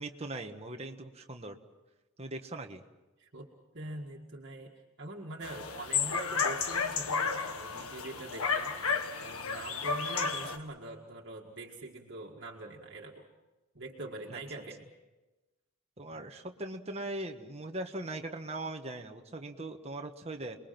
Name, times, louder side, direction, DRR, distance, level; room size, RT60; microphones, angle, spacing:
voice 1, 0.0-1.6 2.2-2.8 14.3-14.4 16.0-20.6, right 2 dB, 30° right, 4 dB, 1.4 m, -40 dB
voice 2, 3.2-3.5 3.7-4.7 5.0-8.8 9.2-13.3 13.7-14.8, right 2 dB, 50° right, -1 dB, 2.1 m, -43 dB
sound 1, 5.4-10.6, left 5 dB, 80° left, 1.6 m, -32 dB
29.5 x 21.5 x 6.0 m, 1.1 s
head